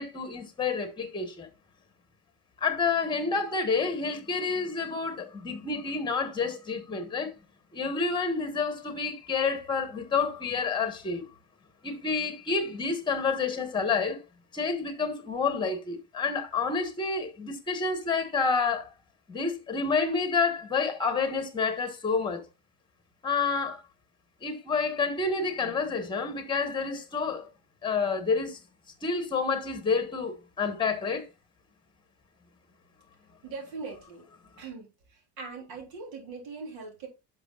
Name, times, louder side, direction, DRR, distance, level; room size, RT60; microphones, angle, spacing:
voice 1, 0.0-1.5 2.6-7.3 7.7-11.3 11.8-14.2 14.5-18.9 19.3-22.5 23.2-23.8 24.4-27.5 27.8-28.6 29.0-31.3, left 4 dB, 10° left, 1.2 m, -29 dB
voice 2, 33.4-34.2 34.6-34.9 35.4-37.1, right 4 dB, 85° right, 3.5 m, -40 dB
11.0 x 6.0 x 2.4 m
cardioid pair, 165°, 37 cm